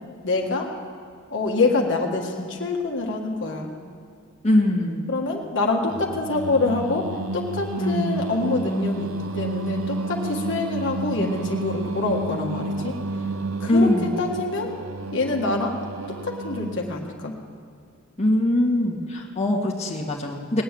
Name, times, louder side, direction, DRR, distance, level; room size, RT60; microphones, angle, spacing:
voice 1, 0.2-0.7 1.3-3.7 5.1-12.9 13.6-14.7 15.1-15.8 16.1-17.3, left 3 dB, 65° left, 0 dB, 1.7 m, -25 dB
voice 2, 4.4-5.1 7.8-8.3 13.7-14.1 18.2-20.6, left 1 dB, 30° left, -1 dB, 1.8 m, -22 dB
Singing, 5.9-17.0, right 2 dB, 80° right, 0.8 m, -31 dB
19.0 x 7.9 x 8.9 m, 2.3 s
head